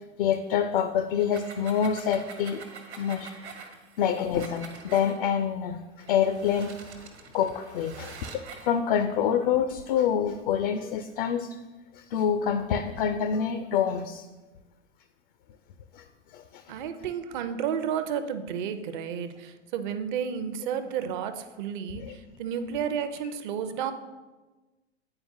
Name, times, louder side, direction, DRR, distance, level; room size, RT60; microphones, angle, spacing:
voice 1, 0.2-2.6 3.0-3.3 4.0-5.8 6.1-6.8 7.3-8.2 8.6-11.5 11.9-14.2 16.0-16.1 16.3-16.6 22.0-22.2, left 8 dB, 50° left, 8 dB, 0.5 m, -26 dB
sound 1, 1.1-5.2 6.0-8.7, right 5 dB, 65° right, 1.2 m, -45 dB
voice 2, 16.7-23.9, right 8 dB, 45° right, 9 dB, 0.6 m, -32 dB
9.7 x 4.4 x 2.7 m, 1.2 s
figure-of-eight pair, 90°, 35 cm